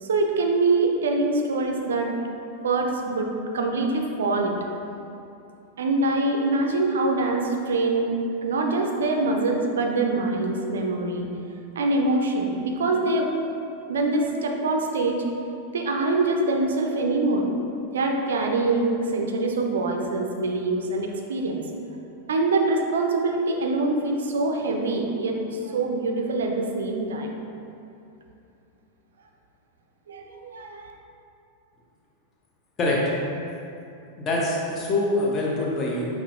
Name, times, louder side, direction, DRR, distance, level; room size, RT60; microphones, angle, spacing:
voice 1, 0.0-2.1 2.6-4.5 5.8-8.1 8.4-11.3 11.8-13.3 13.9-15.2 15.7-17.5 17.9-21.6 22.3-27.3 30.1-30.9, right 2 dB, 65° right, 2 dB, 0.3 m, -24 dB
voice 2, 34.2-36.1, left 2 dB, 30° left, -3 dB, 0.7 m, -24 dB
5.5 x 2.4 x 2.4 m, 2.7 s
figure-of-eight pair, 90°, 0 cm